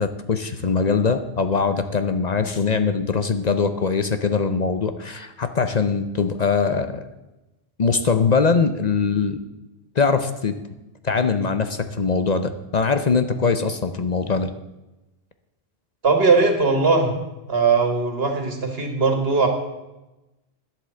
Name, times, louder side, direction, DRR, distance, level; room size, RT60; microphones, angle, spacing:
voice 1, 0.0-7.1 7.8-9.4 10.0-10.6 11.0-14.5, left 5 dB, 45° left, 10 dB, 0.8 m, -22 dB
voice 2, 16.0-17.1 17.5-19.5, right 4 dB, 75° right, 4 dB, 2.1 m, -19 dB
10.5 x 8.3 x 7.6 m, 1.0 s
omnidirectional pair, 1.0 m